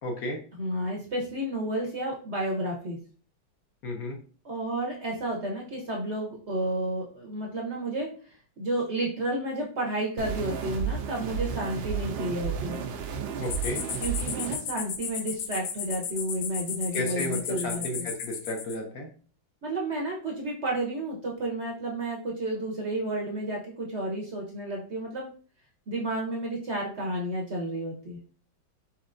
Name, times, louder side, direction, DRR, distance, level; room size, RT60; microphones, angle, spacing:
voice 1, 0.0-0.4 3.8-4.2 13.4-13.8 16.9-19.1, left 1 dB, 60° left, 2 dB, 1.2 m, -33 dB
voice 2, 0.5-3.0 4.4-12.8 14.0-18.1 19.6-25.3 25.9-28.2, right 1 dB, 55° right, -1 dB, 0.8 m, -31 dB
sound 1, 10.2-14.6, right 6 dB, 90° right, 1.4 m, -32 dB
sound 2, 13.4-18.8, left 7 dB, 80° left, 0.7 m, -35 dB
4.4 x 4.3 x 2.5 m, 0.41 s
omnidirectional pair, 2.0 m